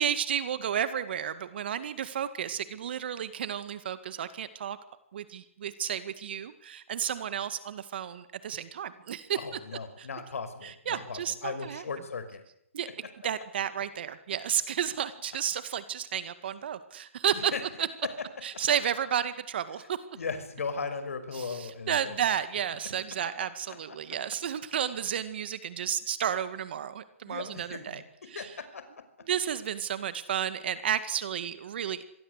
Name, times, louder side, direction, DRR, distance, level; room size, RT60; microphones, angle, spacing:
voice 1, 0.0-4.8 5.1-9.4 10.0-10.1 10.6-11.8 12.7-12.9 13.2-17.5 17.8-17.9 18.4-20.0 21.3-28.0 28.3-28.5 29.3-32.0, right 9 dB, 45° right, 13 dB, 1.9 m, -32 dB
voice 2, 9.4-12.4 12.8-12.9 17.3-17.6 20.2-22.4 23.9-24.0 27.2-28.0 28.3-28.8, left 5 dB, 75° left, 10 dB, 5.7 m, -37 dB
26.0 x 19.5 x 8.2 m, 0.74 s
hypercardioid pair, 165°, 8 cm